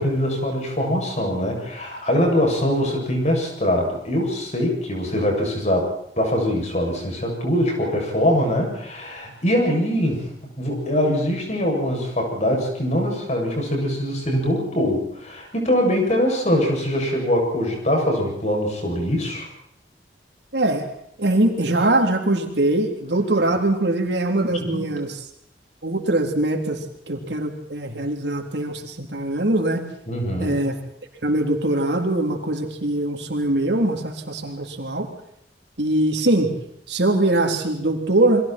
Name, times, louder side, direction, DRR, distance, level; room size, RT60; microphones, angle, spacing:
voice 1, 0.0-5.9 6.2-10.3 10.6-19.5 24.6-24.9 30.1-30.7, equal, 40° left, 1 dB, 7.6 m, -23 dB
voice 2, 20.5-20.9 21.2-25.2 25.8-29.8 30.4-30.8 31.2-35.1 35.8-36.5 36.9-38.4, right 1 dB, 75° right, 3 dB, 3.6 m, -22 dB
29.0 x 22.5 x 4.5 m, 0.72 s
head